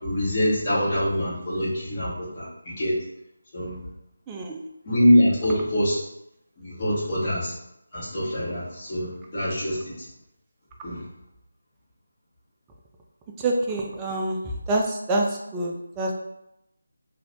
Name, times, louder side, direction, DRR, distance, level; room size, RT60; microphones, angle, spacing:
voice 1, 0.0-3.0 3.5-3.8 4.8-6.0 6.6-7.5 7.9-10.1 10.8-11.0, equal, 30° left, -11 dB, 1.3 m, -24 dB
voice 2, 4.3-4.6 13.4-14.4 14.7-15.3 15.5-16.1, right 2 dB, 15° right, -1 dB, 0.3 m, -26 dB
3.0 x 2.6 x 2.6 m, 0.82 s
figure-of-eight pair, 160°, 0 cm